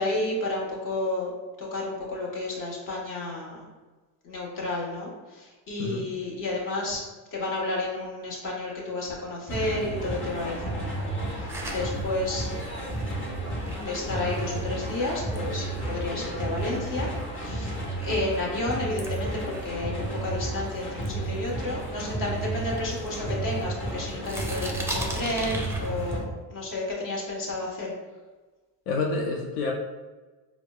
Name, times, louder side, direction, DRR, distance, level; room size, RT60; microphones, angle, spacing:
voice 1, 0.0-1.3 1.6-3.7 4.2-7.0 7.3-12.5 13.8-17.1 17.4-17.7 18.0-27.9, left 2 dB, 50° left, -3 dB, 1.2 m, -31 dB
sound 1, 9.5-26.2, right 1 dB, 30° left, 1.0 m, -32 dB
sound 2, 11.5-16.1 16.5-20.6 21.0-22.2 22.7-23.9 24.2-26.2, right 1 dB, 5° right, 0.5 m, -40 dB
voice 2, 28.9-29.7, left 3 dB, 90° left, -1 dB, 0.5 m, -28 dB
4.3 x 2.1 x 2.2 m, 1.3 s
supercardioid pair, 90°, 42 cm